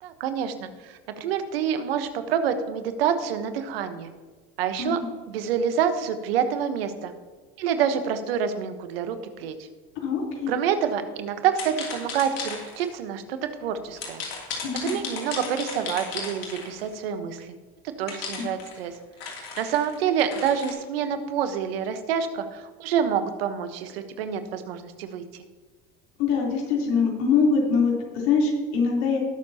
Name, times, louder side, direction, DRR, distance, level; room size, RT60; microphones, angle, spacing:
voice 1, 0.0-4.1 4.6-5.0 5.3-7.1 7.6-9.5 10.5-14.2 14.7-17.5 18.0-18.9 19.6-25.2, right 8 dB, 85° right, 9 dB, 1.3 m, -27 dB
voice 2, 10.0-10.5 14.6-15.0 18.4-18.5 26.2-29.2, left 5 dB, 70° left, -2 dB, 3.8 m, -23 dB
sound 1, 11.5-12.9 14.0-16.9 18.1-20.7, left 5 dB, 85° left, 3.1 m, -35 dB
19.5 x 6.9 x 2.9 m, 1.4 s
hypercardioid pair, 90°, 29 cm